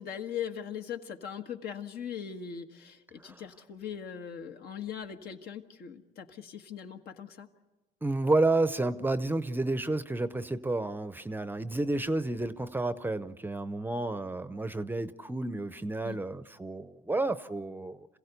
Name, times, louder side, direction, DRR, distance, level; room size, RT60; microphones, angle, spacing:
voice 1, 0.0-7.5 16.0-16.2, left 8 dB, 70° left, 5 dB, 1.5 m, -40 dB
voice 2, 8.0-18.1, right 2 dB, 10° right, 13 dB, 0.6 m, -30 dB
26.5 x 16.0 x 8.2 m, 1.2 s
cardioid pair, 110°, 17 cm